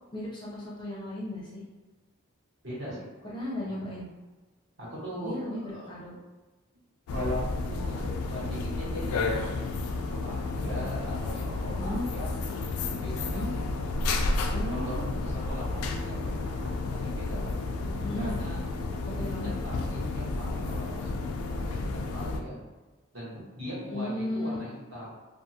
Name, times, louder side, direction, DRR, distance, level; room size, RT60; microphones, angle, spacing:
voice 1, 0.1-1.6 3.3-4.1 5.2-6.1 7.9-8.1 11.7-12.0 13.2-13.5 14.5-15.1 18.0-18.4 19.1-19.5 23.9-24.6, left 1 dB, 20° left, -6 dB, 0.5 m, -35 dB
voice 2, 2.6-3.3 3.6-3.7 4.8-5.9 7.1-9.6 9.9-12.3 13.0-13.6 14.6-17.6 18.1-18.6 19.1-21.1 21.4-22.6 23.1-25.1, equal, 55° right, -7 dB, 1.2 m, -40 dB
sound 1, 7.1-22.4, left 3 dB, 90° left, 0.3 m, -31 dB
2.5 x 2.4 x 2.7 m, 1.2 s
head